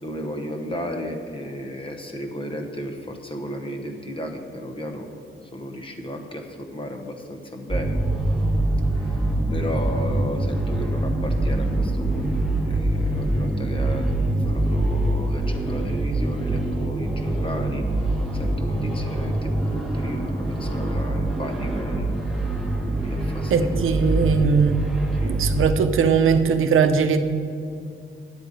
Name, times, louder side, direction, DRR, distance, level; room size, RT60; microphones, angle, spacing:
voice 1, 0.0-5.1 5.4-8.0 8.9-22.1 23.0-23.9 25.2-25.6, equal, 25° left, 4 dB, 1.0 m, -34 dB
sound 1, 7.7-25.7, right 1 dB, ahead, 1.3 m, -24 dB
voice 2, 23.5-24.8 25.2-27.2, right 6 dB, 90° right, 8 dB, 0.7 m, -20 dB
10.5 x 8.2 x 5.1 m, 2.4 s
wide cardioid pair, 160°, 21 cm